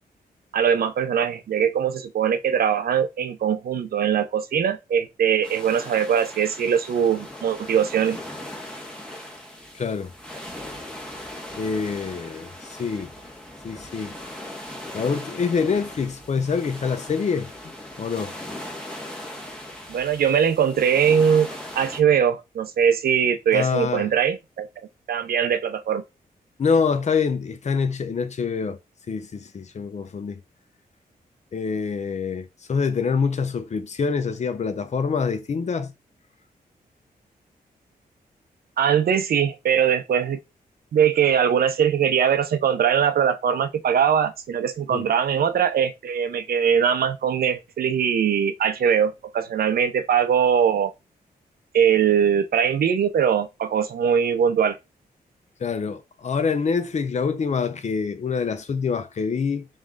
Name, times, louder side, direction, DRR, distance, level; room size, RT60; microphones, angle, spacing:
voice 1, 0.5-8.2 19.9-21.5 21.8-24.7 25.1-26.0 38.8-40.4 40.9-50.9 51.7-54.8, right 8 dB, 70° right, 0.7 m, -21 dB
sound 1, 5.4-22.0, left 1 dB, 5° left, 1.4 m, -39 dB
voice 2, 9.7-10.1 11.6-13.1 13.6-14.1 14.9-17.5 18.0-18.3 23.5-24.1 26.6-28.8 29.1-30.4 31.5-35.9 44.9-45.0 55.6-59.7, left 5 dB, 45° left, 0.7 m, -25 dB
3.7 x 3.2 x 3.7 m
cardioid pair, 105°, 16 cm